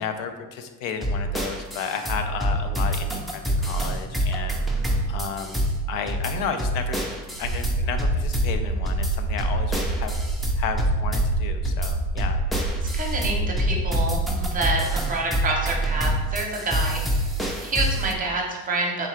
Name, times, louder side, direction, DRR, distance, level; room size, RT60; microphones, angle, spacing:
voice 1, 0.0-7.0 7.4-10.1 10.6-12.4, left 6 dB, 80° left, 7 dB, 0.5 m, -33 dB
sound 1, 1.0-18.1, equal, ahead, 0.4 m, -26 dB
sound 2, 7.4-14.6, right 3 dB, 60° right, 0.5 m, -27 dB
voice 2, 12.8-17.3 17.6-19.1, right 2 dB, 25° right, 0 dB, 0.8 m, -28 dB
3.7 x 2.3 x 4.3 m, 1.2 s
cardioid pair, 120°, 32 cm